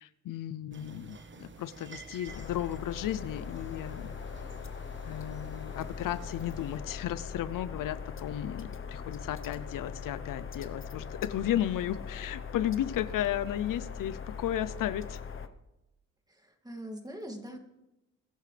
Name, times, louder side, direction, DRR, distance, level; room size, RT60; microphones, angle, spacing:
voice 1, 0.0-4.1 5.1-15.2, left 11 dB, 80° left, 15 dB, 0.6 m, -34 dB
sound 1, 0.7-6.8, right 4 dB, 35° right, 1.2 m, -51 dB
sound 2, 2.3-15.5, left 6 dB, 40° left, 1.0 m, -41 dB
voice 2, 16.3-17.6, equal, 10° right, 3 dB, 2.4 m, -42 dB
23.5 x 11.5 x 3.4 m, 0.94 s
cardioid pair, 85°, 32 cm